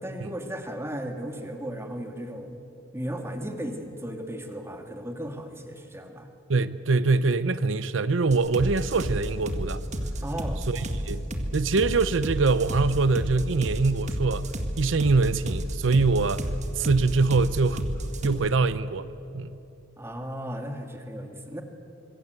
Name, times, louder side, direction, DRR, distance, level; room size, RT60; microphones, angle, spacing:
voice 1, 0.0-2.6 2.9-6.3 10.2-10.6 20.0-21.6, equal, 15° right, 2.0 m, -35 dB
voice 2, 6.5-9.8 10.7-11.2 11.5-14.5 14.8-16.4 16.8-17.9 18.2-19.1 19.3-19.5, right 3 dB, 85° right, 0.7 m, -23 dB
sound 1, 8.3-18.3, equal, 40° right, 2.0 m, -31 dB
26.0 x 22.5 x 8.0 m
head